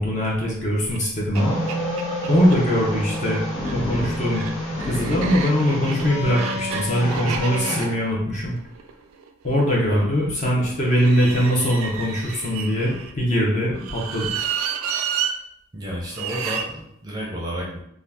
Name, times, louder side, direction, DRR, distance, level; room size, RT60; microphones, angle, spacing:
voice 1, 0.0-1.6 2.3-3.4 3.7-4.4 4.8-8.5 9.4-14.5, equal, 35° left, -4 dB, 0.8 m, -22 dB
sound 1, 0.9-1.0 1.3-1.4 1.7-2.6 3.5-9.7 10.8-13.1 13.8-15.3 16.1-16.7, right 7 dB, 80° right, 0.4 m, -31 dB
sound 2, 1.3-7.8, left 1 dB, 85° left, 1.0 m, -28 dB
voice 2, 15.7-17.8, equal, 20° right, -3 dB, 0.6 m, -31 dB
2.8 x 2.4 x 3.5 m, 0.75 s
head